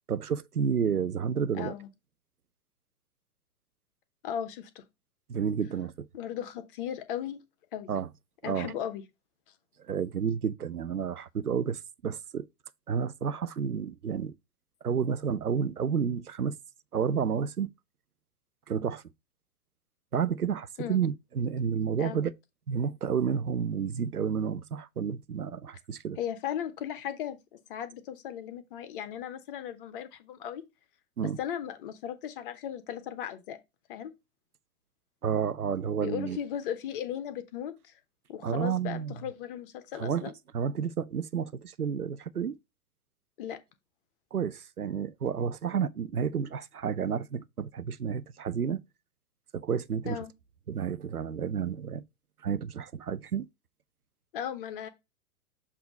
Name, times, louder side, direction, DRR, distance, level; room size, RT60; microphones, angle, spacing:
voice 1, 0.1-1.7 5.3-6.1 7.9-8.1 8.4-8.7 9.9-12.5 12.9-14.3 14.8-16.6 16.9-17.7 18.7-19.0 20.1-22.3 22.7-26.2 31.2-31.4 35.2-36.4 38.4-39.1 39.9-42.6 44.3-48.8 49.5-50.2 50.7-52.0 52.4-53.5, right 7 dB, 85° right, 0.7 m, -30 dB
voice 2, 1.5-1.9 4.2-4.8 6.1-7.4 7.7-7.9 8.4-9.0 20.8-21.0 22.0-22.2 26.2-30.6 31.2-33.6 33.9-34.1 36.0-37.9 38.3-40.3 43.4-43.6 50.0-50.3 54.3-54.9, left 9 dB, 35° left, 1.0 m, -36 dB
7.4 x 2.8 x 4.9 m
figure-of-eight pair, 105°, 44 cm